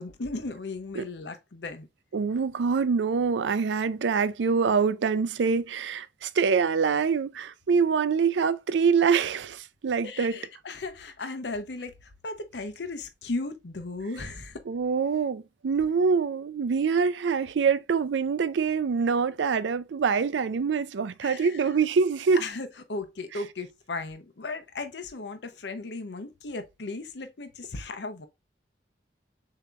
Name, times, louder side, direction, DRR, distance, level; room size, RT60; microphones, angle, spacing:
voice 1, 0.0-1.9 10.0-14.6 21.2-21.7 22.4-28.3, left 3 dB, 75° left, 0.7 m, -36 dB
voice 2, 2.1-10.4 14.7-22.4, right 5 dB, 90° right, 0.4 m, -25 dB
6.7 x 2.9 x 2.4 m
head